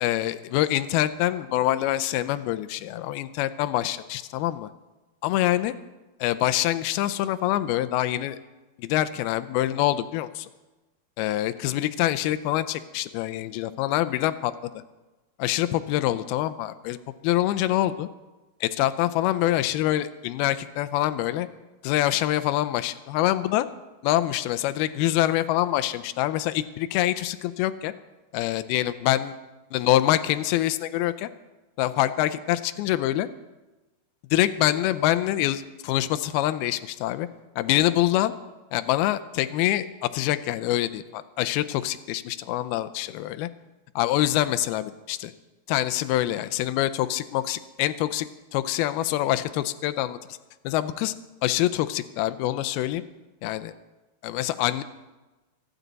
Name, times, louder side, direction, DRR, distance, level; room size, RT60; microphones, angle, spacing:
voice 1, 0.0-4.7 5.2-5.7 6.2-8.4 8.8-10.5 11.2-14.5 15.4-17.0 17.2-18.1 18.6-21.5 21.8-23.7 24.0-27.9 28.3-29.4 29.7-31.3 31.8-33.3 34.3-37.3 37.6-38.3 38.7-39.9 40.1-43.5 44.0-45.3 45.7-50.2 50.6-51.1 51.4-53.0 53.4-53.7 54.2-54.8, left 14 dB, 90° left, 12 dB, 2.6 m, -25 dB
24.5 x 10.0 x 4.0 m, 1.1 s
omnidirectional pair, 4.3 m